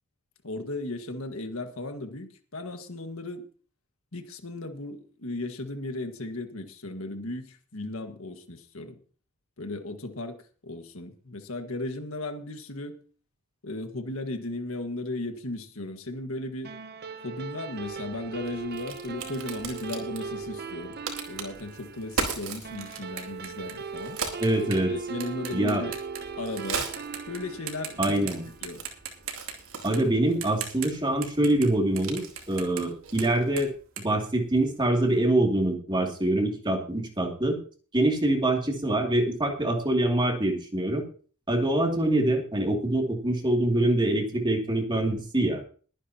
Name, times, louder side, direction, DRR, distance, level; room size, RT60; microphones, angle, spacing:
voice 1, 0.4-3.5 4.1-9.0 9.6-10.4 10.6-13.0 13.6-16.7 17.2-21.0 21.3-24.2 24.9-25.9 26.4-26.9 27.3-28.8, left 2 dB, 70° left, 6 dB, 1.7 m, -36 dB
sound 1, 16.6-29.4, right 5 dB, 50° right, 0.8 m, -39 dB
Crack, 17.7-33.8, right 5 dB, 85° right, 4.2 m, -40 dB
sound 2, 21.7-26.6 26.9-27.4 27.7-28.3 28.6-31.7 32.0-35.0, right 8 dB, 65° right, 2.7 m, -40 dB
voice 2, 24.4-24.9 25.5-25.8 28.0-28.4 29.8-33.7 34.0-37.6 37.9-41.0 41.5-45.6, right 1 dB, 20° right, 1 dB, 2.6 m, -25 dB
22.0 x 9.9 x 2.9 m, 0.41 s
head